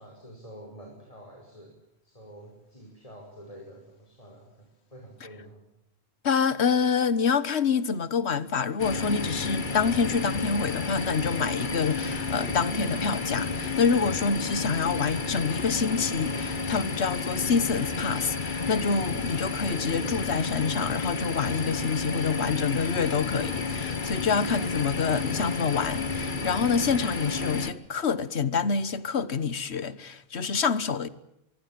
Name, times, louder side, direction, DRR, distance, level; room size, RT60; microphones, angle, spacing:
voice 1, 0.0-1.7 2.0-5.6, equal, 35° left, 5.7 m, -48 dB
voice 2, 6.2-31.1, left 5 dB, 85° left, 1.5 m, -27 dB
sound 1, 8.8-27.7, left 4 dB, 50° left, 1.7 m, -31 dB
25.0 x 23.0 x 7.6 m
omnidirectional pair, 1.1 m